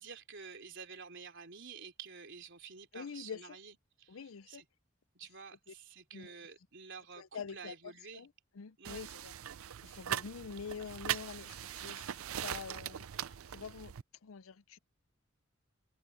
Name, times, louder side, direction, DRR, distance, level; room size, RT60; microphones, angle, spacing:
voice 1, 0.0-4.7 5.2-8.3 8.8-9.1, right 5 dB, 60° right, 3.6 m, -50 dB
voice 2, 2.9-3.6 4.1-4.6 6.1-6.4 7.2-9.3 9.8-13.9 14.2-14.8, left 6 dB, 70° left, 0.5 m, -46 dB
sound 1, 8.8-14.0, right 10 dB, 75° right, 0.5 m, -40 dB
head